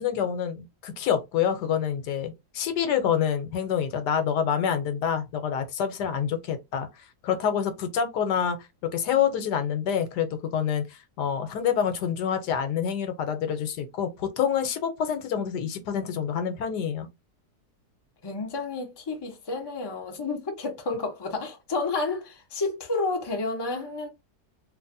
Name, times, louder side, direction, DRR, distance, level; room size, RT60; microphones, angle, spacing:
voice 1, 0.0-6.9 7.2-8.6 8.9-17.1, left 8 dB, 85° left, 1.3 m, -27 dB
voice 2, 18.2-24.1, left 3 dB, 25° left, 0.6 m, -30 dB
3.2 x 2.5 x 2.6 m
omnidirectional pair, 1.7 m